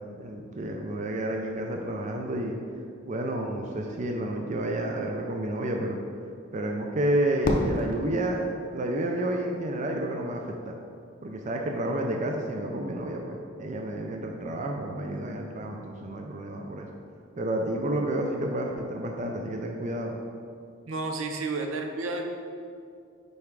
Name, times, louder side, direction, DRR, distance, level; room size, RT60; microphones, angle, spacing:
voice 1, 0.1-2.6 3.1-6.0 6.5-10.8 11.2-16.9 17.4-20.2, right 1 dB, 35° right, 2 dB, 0.4 m, -30 dB
Fireworks, 7.4-9.6, equal, 40° left, 0.7 m, -31 dB
voice 2, 20.9-22.2, right 3 dB, 75° right, 3 dB, 0.6 m, -31 dB
5.4 x 4.8 x 4.6 m, 2.3 s
head